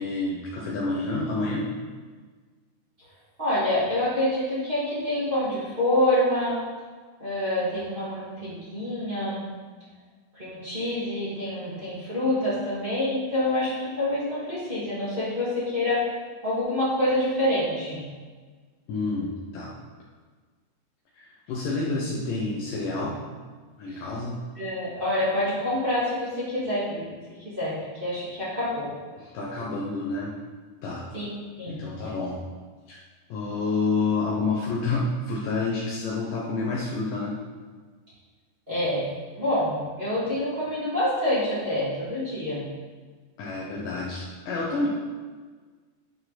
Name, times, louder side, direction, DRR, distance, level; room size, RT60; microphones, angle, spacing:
voice 1, 0.0-1.7 18.9-19.8 21.1-23.2 23.8-24.4 29.2-30.4 30.8-31.1 31.7-32.4 32.9-33.0 33.3-37.4 43.4-44.9, left 3 dB, 75° left, -4 dB, 2.0 m, -29 dB
voice 2, 3.4-6.6 7.2-9.5 10.3-16.1 16.4-18.0 23.9-24.0 24.5-28.9 31.1-31.3 31.6-31.8 38.7-39.0 39.3-42.6, left 1 dB, 15° right, -11 dB, 1.9 m, -27 dB
11.0 x 4.6 x 4.3 m, 1.5 s
omnidirectional pair, 5.0 m